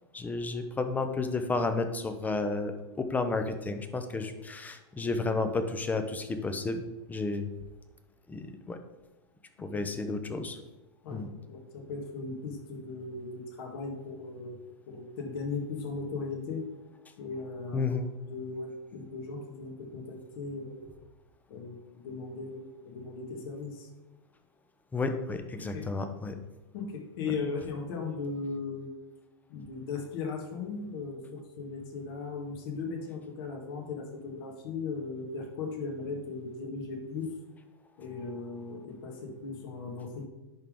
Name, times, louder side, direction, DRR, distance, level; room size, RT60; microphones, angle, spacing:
voice 1, 0.1-6.8 7.1-7.5 8.3-8.8 9.6-10.6 11.1-11.3 17.7-18.1 24.9-26.4 27.2-27.3, left 3 dB, 10° left, 8 dB, 0.7 m, -32 dB
voice 2, 11.0-14.6 14.9-16.6 17.2-17.9 18.3-20.8 21.5-23.9 25.6-25.9 26.7-28.9 29.5-37.3 38.0-40.3, left 4 dB, 60° left, 1 dB, 1.8 m, -37 dB
10.5 x 3.6 x 3.8 m, 1.1 s
hypercardioid pair, 125°, 14 cm